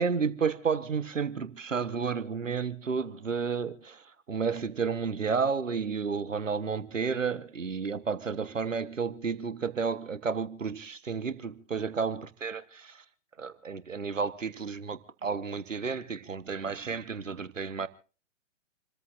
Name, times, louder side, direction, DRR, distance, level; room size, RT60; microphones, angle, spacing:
voice 1, 0.0-4.0 4.3-13.0 13.4-17.9, right 5 dB, 80° right, 1.3 m, -31 dB
28.5 x 14.0 x 2.6 m
figure-of-eight pair, 120°, 38 cm